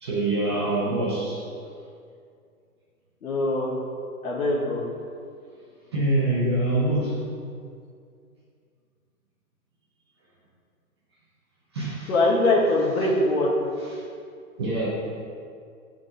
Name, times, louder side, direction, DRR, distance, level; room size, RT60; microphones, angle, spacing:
voice 1, 0.0-1.4 5.9-7.2 11.7-12.1 13.9-14.0 14.6-14.9, right 2 dB, 20° right, -6 dB, 0.5 m, -25 dB
voice 2, 3.2-3.7 4.2-4.8 12.1-13.5, left 2 dB, 70° left, -5 dB, 1.4 m, -22 dB
9.3 x 3.7 x 2.7 m, 2.3 s
hypercardioid pair, 150°, 45 cm